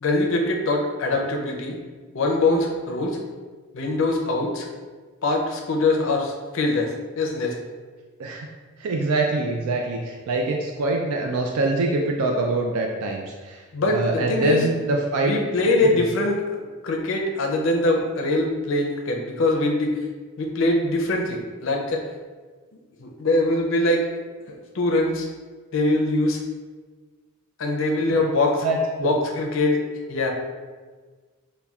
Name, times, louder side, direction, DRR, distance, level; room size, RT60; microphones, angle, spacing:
voice 1, 0.0-1.8 2.1-3.2 3.7-4.7 5.2-7.6 13.7-14.6 15.2-19.9 20.4-22.0 23.0-24.1 24.7-25.3 25.7-26.4 27.6-28.7 29.0-29.8 30.1-30.3, left 2 dB, 60° left, 1 dB, 0.5 m, -23 dB
voice 2, 8.8-15.3 15.9-16.0 28.1-28.2 28.6-29.1, right 2 dB, 80° right, 1 dB, 0.4 m, -24 dB
5.5 x 2.2 x 2.3 m, 1.4 s
head